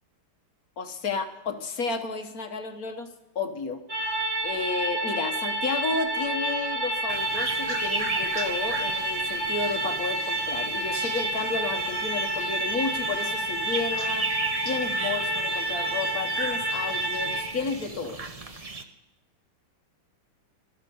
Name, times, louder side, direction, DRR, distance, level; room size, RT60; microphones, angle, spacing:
voice 1, 0.8-4.2 4.4-14.3 14.6-18.2 18.5-18.7, left 4 dB, 45° left, 7 dB, 1.6 m, -32 dB
sound 1, 3.9-17.4, right 1 dB, 35° right, 2.4 m, -29 dB
sound 2, 7.1-18.8, right 3 dB, 60° right, 0.3 m, -36 dB
14.0 x 14.0 x 5.5 m, 0.92 s
omnidirectional pair, 2.3 m